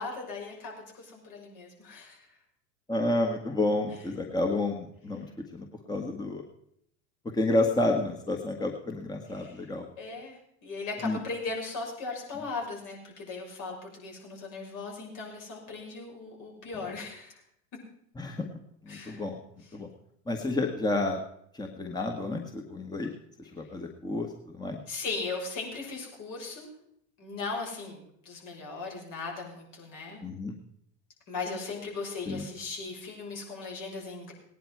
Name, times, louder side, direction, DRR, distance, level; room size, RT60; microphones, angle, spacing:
voice 1, 0.0-2.3 9.3-9.6 10.0-17.4 18.9-19.2 24.9-26.7 27.2-30.2 31.3-34.3, left 3 dB, 55° left, -1 dB, 6.1 m, -38 dB
voice 2, 2.9-6.4 7.3-9.8 11.0-11.2 16.7-16.9 18.1-18.4 18.8-19.4 19.7-19.9 20.3-21.2 21.5-23.1 23.4-24.8 30.2-30.5 32.3-32.4, left 2 dB, 10° left, 2 dB, 1.6 m, -30 dB
18.0 x 10.0 x 4.7 m, 0.71 s
hypercardioid pair, 95°, 37 cm